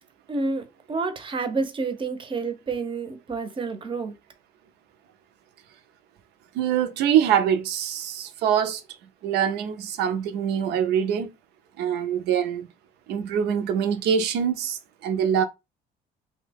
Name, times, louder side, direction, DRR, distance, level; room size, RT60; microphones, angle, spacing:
voice 1, 0.3-4.1, right 4 dB, 30° right, 0.6 m, -29 dB
voice 2, 6.5-8.8 9.2-11.3 11.8-12.7 13.1-15.4, right 8 dB, 80° right, 0.5 m, -24 dB
2.7 x 2.1 x 3.3 m
cardioid pair, 110°, 17 cm